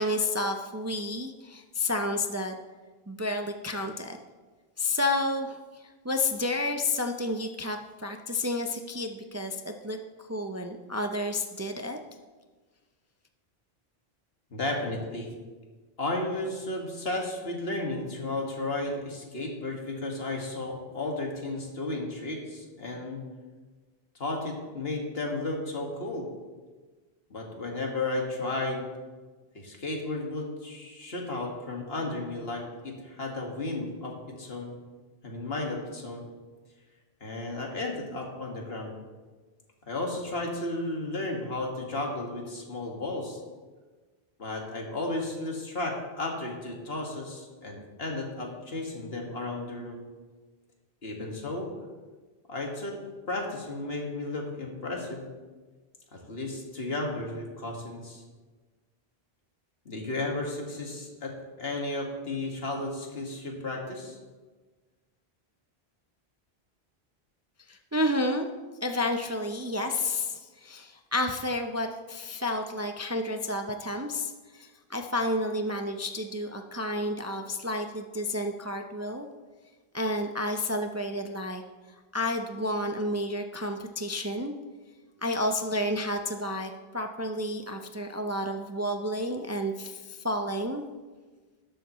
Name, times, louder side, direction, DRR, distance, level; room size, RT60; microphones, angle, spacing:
voice 1, 0.0-2.5 3.1-4.2 4.8-5.6 6.0-10.0 10.3-12.0 67.7-68.5 68.8-79.3 79.9-81.6 82.1-84.5 85.2-90.8, left 1 dB, 20° right, 4 dB, 0.5 m, -30 dB
voice 2, 14.5-15.3 16.0-23.2 24.2-26.3 27.3-28.8 29.5-34.7 35.2-36.2 37.2-38.9 39.9-43.4 44.4-50.0 51.0-51.7 52.5-53.0 53.3-55.3 56.1-58.2 59.9-64.2, left 2 dB, 70° left, 0 dB, 2.1 m, -33 dB
13.0 x 12.0 x 3.1 m, 1.3 s
omnidirectional pair, 1.1 m